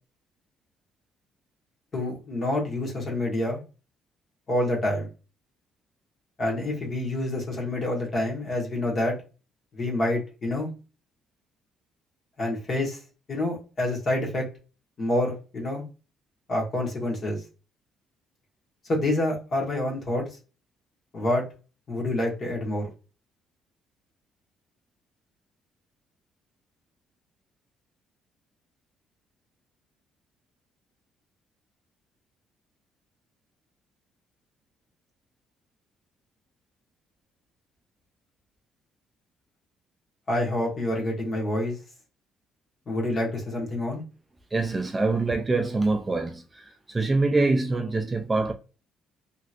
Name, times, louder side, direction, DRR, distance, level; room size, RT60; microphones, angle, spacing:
voice 1, 1.9-3.6 4.5-5.1 6.4-9.2 9.7-10.7 12.4-13.0 13.3-14.5 15.0-15.8 16.5-17.4 18.9-20.3 21.1-21.4 21.9-22.9 40.3-41.8 42.9-44.0, left 1 dB, 35° left, 1.2 m, -27 dB
voice 2, 44.5-48.5, right 3 dB, 15° right, 0.3 m, -25 dB
2.9 x 2.9 x 2.4 m
cardioid pair, 145°, 0 cm